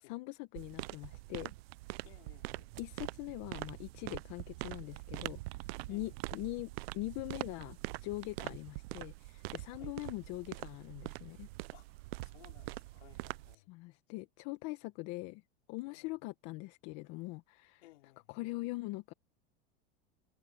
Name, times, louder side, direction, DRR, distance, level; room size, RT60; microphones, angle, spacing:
voice 1, 0.0-1.5 2.8-11.5 13.7-15.4 15.7-17.8 18.3-19.1, left 21 dB, 60° left, 1.4 m, -42 dB
sound 1, 0.6-13.5, right 22 dB, 80° right, 0.5 m, -44 dB
voice 2, 2.0-2.7 5.9-6.2 8.4-8.6 9.7-9.9 11.7-13.7 15.9-16.1 17.8-18.4, left 18 dB, 85° left, 3.8 m, -61 dB
supercardioid pair, 120°, 30 cm